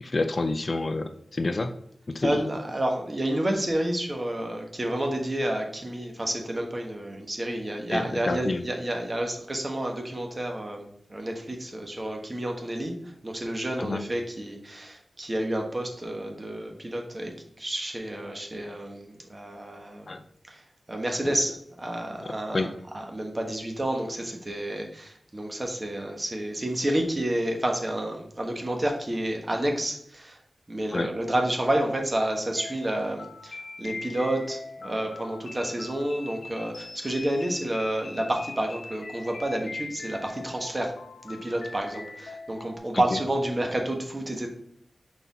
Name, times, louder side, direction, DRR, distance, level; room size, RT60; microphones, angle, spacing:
voice 1, 0.0-1.7 2.1-2.4 7.9-8.6 13.8-14.0 20.1-20.2 22.2-22.7 30.9-31.1 42.9-43.2, left 3 dB, 40° left, 8 dB, 0.4 m, -29 dB
voice 2, 2.2-12.9 13.2-20.2 20.5-20.6 20.9-30.4 30.7-40.9 41.2-44.5, right 1 dB, 30° right, 2 dB, 1.1 m, -30 dB
sound 1, 32.6-42.8, left 3 dB, 80° left, 0.9 m, -42 dB
5.4 x 4.3 x 4.0 m, 0.70 s
wide cardioid pair, 120°, 0 cm